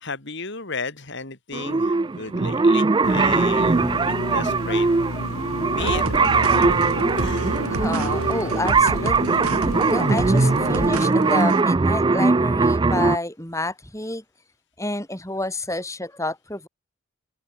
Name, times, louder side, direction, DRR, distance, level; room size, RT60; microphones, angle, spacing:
voice 1, 0.0-4.9 5.6-7.6, left 4 dB, 50° left, 2.8 m, -34 dB
sound 1, 1.5-13.2, right 3 dB, 20° right, 0.3 m, -20 dB
sound 2, 3.0-11.0, left 2 dB, 75° left, 1.9 m, -32 dB
sound 3, 5.8-11.6, right 3 dB, 80° right, 1.3 m, -29 dB
voice 2, 7.7-9.4 9.9-14.2 14.8-16.7, left 2 dB, 15° left, 5.4 m, -29 dB
head